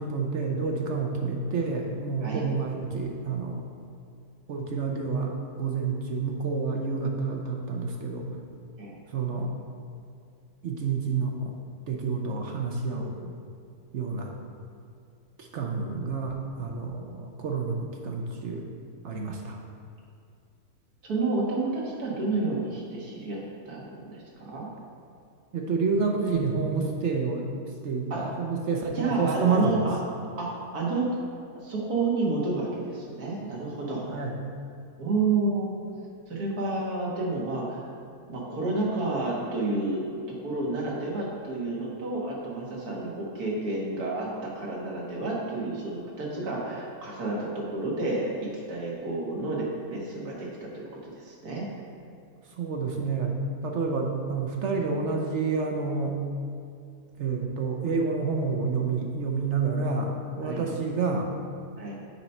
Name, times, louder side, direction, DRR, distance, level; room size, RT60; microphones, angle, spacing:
voice 1, 0.0-3.6 4.5-8.3 9.1-9.5 10.6-11.5 11.9-13.3 13.9-14.4 15.4-18.7 19.0-19.6 25.5-27.5 27.8-29.8 34.1-34.4 52.6-53.4 53.6-56.2 57.2-61.3, right 4 dB, 60° right, 1 dB, 0.8 m, -29 dB
voice 2, 21.0-23.4 23.7-24.7 28.1-28.5 28.9-30.0 30.4-31.1 31.6-34.1 35.0-35.7 36.3-38.0 38.3-51.7 60.4-60.7 61.8-61.9, right 3 dB, 85° right, -4 dB, 1.9 m, -30 dB
7.1 x 4.3 x 5.4 m, 2.3 s
omnidirectional pair, 1.6 m